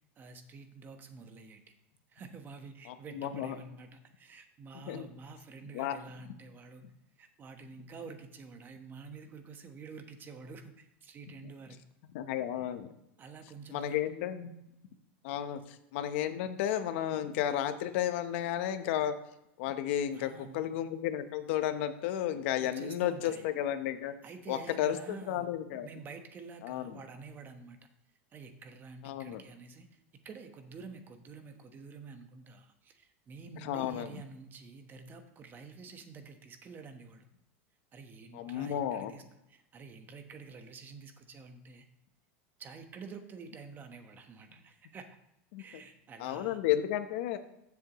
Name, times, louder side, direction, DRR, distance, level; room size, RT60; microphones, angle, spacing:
voice 1, 0.2-1.6 2.1-6.9 7.2-11.8 13.2-14.0 15.5-15.6 20.1-20.7 22.6-23.5 24.2-27.8 28.3-37.3 37.9-41.8 42.6-45.2 45.6-46.6, right 4 dB, 30° right, 6 dB, 1.2 m, -49 dB
voice 2, 2.9-3.6 4.9-5.1 5.7-6.0 12.1-12.9 13.7-14.5 15.2-19.1 19.6-24.1 24.5-25.0 25.3-25.9 26.6-27.0 29.0-29.4 33.6-34.1 38.3-39.1 45.5-45.6 46.2-47.4, left 11 dB, 65° left, 10 dB, 1.0 m, -33 dB
15.0 x 7.2 x 3.1 m, 0.82 s
supercardioid pair, 125°, 7 cm